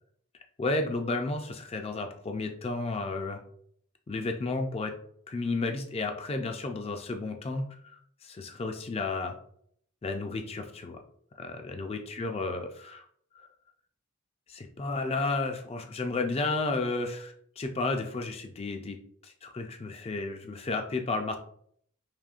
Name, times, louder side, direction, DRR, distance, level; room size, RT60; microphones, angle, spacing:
voice 1, 0.6-3.4 4.1-4.9 5.3-9.4 10.0-11.0 11.4-13.0 13.3-13.5 14.5-19.0 19.2-21.4, left 3 dB, 30° left, 5 dB, 0.3 m, -32 dB
5.0 x 3.0 x 2.4 m, 0.65 s
head